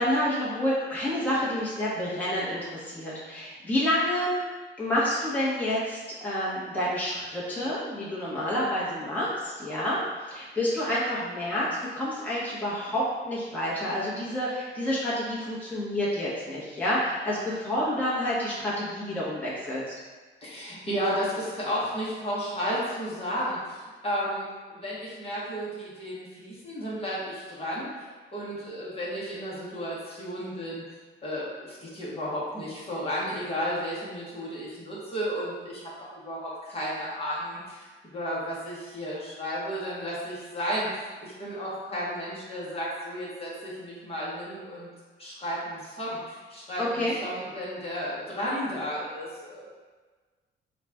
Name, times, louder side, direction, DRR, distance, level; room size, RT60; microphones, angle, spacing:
voice 1, 0.0-4.4 4.8-19.8 46.8-47.2, left 1 dB, 10° left, -9 dB, 1.2 m, -29 dB
voice 2, 20.4-24.5 24.7-27.9 28.3-30.8 31.2-35.9 36.2-40.9 41.2-44.9 45.2-49.7, equal, 30° left, -7 dB, 1.2 m, -33 dB
4.0 x 2.4 x 3.5 m, 1.3 s
cardioid pair, 90°, 20 cm